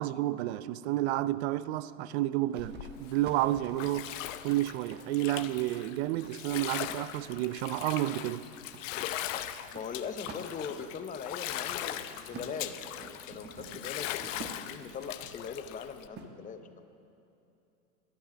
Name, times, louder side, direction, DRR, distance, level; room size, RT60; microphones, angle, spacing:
voice 1, 0.0-8.4, right 15 dB, 50° right, 0.5 m, -31 dB
sound 1, 2.5-7.9 8.7-15.1 16.2-16.3, right 4 dB, 25° right, 1.2 m, -49 dB
Bathtub (filling or washing), 2.6-16.1, left 12 dB, 60° left, 0.7 m, -40 dB
voice 2, 9.7-14.1 14.4-16.6, left 6 dB, 20° left, 0.6 m, -40 dB
12.0 x 11.0 x 6.0 m
hypercardioid pair, 105°, 43 cm